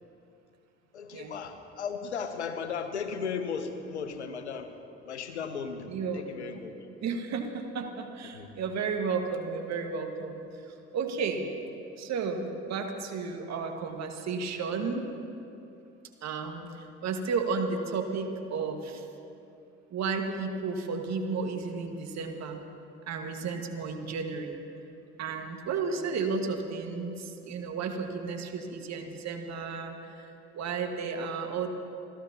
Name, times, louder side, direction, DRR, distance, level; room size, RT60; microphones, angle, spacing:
voice 1, 0.9-6.7 8.3-8.5, left 6 dB, 90° left, 8 dB, 0.9 m, -36 dB
voice 2, 5.9-6.2 7.0-11.5 12.0-15.1 16.2-19.1 19.9-22.6 23.1-24.6 25.2-31.7, right 5 dB, 55° right, 4 dB, 1.7 m, -33 dB
28.0 x 13.5 x 2.9 m, 2.7 s
hypercardioid pair, 50°, 33 cm